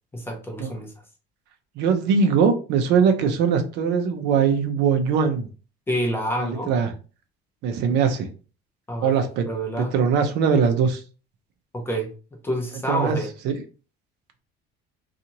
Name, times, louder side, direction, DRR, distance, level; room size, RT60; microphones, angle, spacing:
voice 1, 0.1-0.9 5.9-6.7 8.9-9.2 9.5-9.9 11.7-12.1 12.4-13.3, equal, 10° left, 0.5 m, -27 dB
voice 2, 1.8-5.5 6.4-6.9 7.6-8.3 9.0-9.5 9.8-11.0 12.9-13.2 13.4-13.6, right 6 dB, 60° right, 0.6 m, -21 dB
2.7 x 2.4 x 2.8 m
cardioid pair, 160°, 20 cm